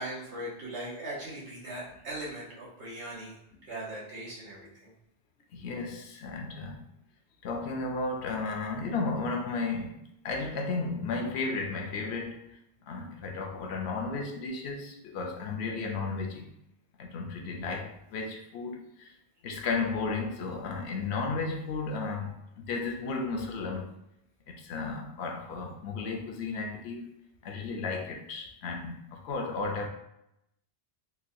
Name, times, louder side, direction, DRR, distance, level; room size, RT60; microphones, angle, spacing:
voice 1, 0.0-3.3 3.7-4.9, right 1 dB, 75° right, 1.4 m, -39 dB
voice 2, 5.5-6.8 7.4-12.5 12.9-16.5 17.0-19.1 19.4-23.9 24.5-27.0 27.4-29.9, left 3 dB, 70° left, 0.8 m, -34 dB
4.0 x 2.2 x 2.6 m
omnidirectional pair, 1.2 m